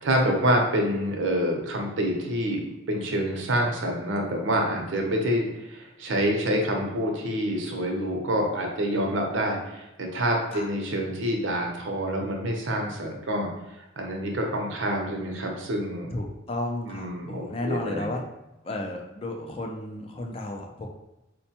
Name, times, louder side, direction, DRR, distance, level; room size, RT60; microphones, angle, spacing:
voice 1, 0.0-2.6 2.9-13.5 14.0-16.1 16.9-18.1, equal, 75° right, 1 dB, 0.6 m, -27 dB
voice 2, 12.8-13.2 16.1-18.2 18.6-20.9, left 1 dB, 30° left, 2 dB, 0.4 m, -33 dB
4.2 x 2.1 x 2.8 m, 0.96 s
head